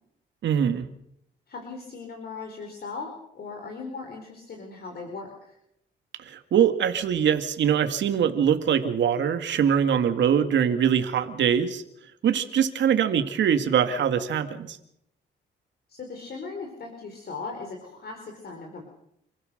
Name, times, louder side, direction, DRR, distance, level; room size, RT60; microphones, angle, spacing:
voice 1, 0.4-0.9 6.2-11.8 12.2-14.8, right 8 dB, 70° right, 8 dB, 2.1 m, -23 dB
voice 2, 1.5-5.6 15.9-18.8, left 4 dB, 55° left, 3 dB, 5.0 m, -38 dB
29.0 x 16.5 x 6.7 m, 0.76 s
cardioid pair, 90°, 19 cm